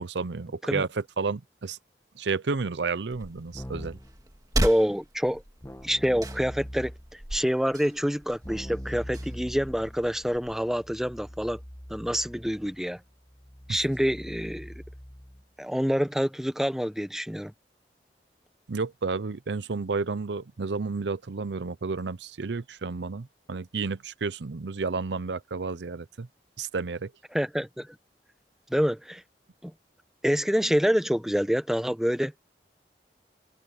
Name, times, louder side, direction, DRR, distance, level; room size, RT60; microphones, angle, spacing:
voice 1, 0.0-1.8 2.1-4.0 13.7-13.8 18.7-26.3 26.6-27.1, right 4 dB, 85° right, 0.7 m, -31 dB
sound 1, 3.1-10.6, right 1 dB, 20° right, 2.6 m, -36 dB
Keyboard (musical), 3.5-4.2 5.6-7.2 8.4-15.5, equal, 15° left, 1.7 m, -42 dB
voice 2, 4.6-5.4 5.8-11.6 11.9-13.0 13.7-14.7 15.6-17.5 27.3-27.9 28.7-29.2 29.6-29.7 30.2-32.3, equal, ahead, 0.8 m, -27 dB
head